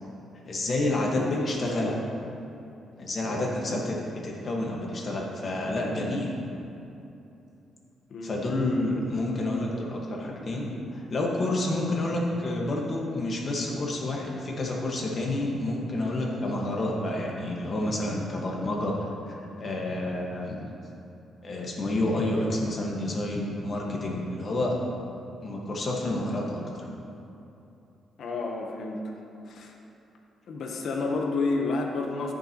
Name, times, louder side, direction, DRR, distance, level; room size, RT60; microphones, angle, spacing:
voice 1, 0.4-1.9 3.0-6.3 8.2-20.7 21.4-24.8 25.4-26.6, left 1 dB, 40° left, -2 dB, 1.5 m, -29 dB
voice 2, 1.1-2.0 3.2-3.5 8.1-8.4 28.2-29.1 29.5-29.7 30.5-32.3, left 3 dB, 60° left, 1 dB, 1.0 m, -30 dB
14.0 x 6.8 x 3.0 m, 2.8 s
cardioid pair, 130°, 0 cm